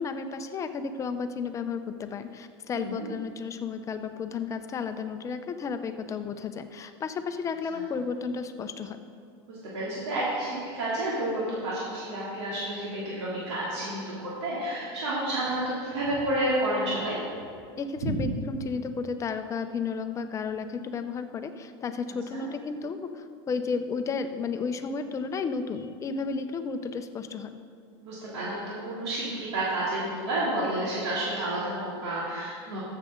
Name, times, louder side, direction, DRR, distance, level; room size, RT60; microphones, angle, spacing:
voice 1, 0.0-9.0 17.8-27.5, left 5 dB, 20° left, 8 dB, 0.6 m, -33 dB
voice 2, 2.7-3.1 7.7-7.8 9.5-17.2 18.0-18.1 22.3-22.5 28.0-32.8, right 1 dB, 85° right, -8 dB, 2.8 m, -30 dB
13.5 x 7.5 x 3.8 m, 2.2 s
supercardioid pair, 130°, 14 cm